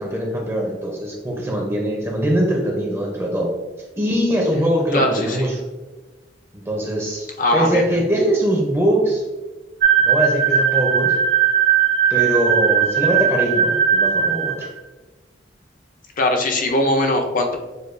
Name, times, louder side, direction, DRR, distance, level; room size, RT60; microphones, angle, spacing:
voice 1, 0.0-3.5 4.0-5.6 6.7-7.3 7.5-9.2 10.0-11.1 12.1-14.7, right 1 dB, 15° right, 0 dB, 0.6 m, -22 dB
voice 2, 4.9-5.5 7.4-8.0 16.2-17.6, left 1 dB, 50° left, 4 dB, 0.6 m, -20 dB
sound 1, 9.8-14.7, right 7 dB, 65° right, 0.9 m, -18 dB
6.6 x 2.3 x 2.5 m, 1.2 s
head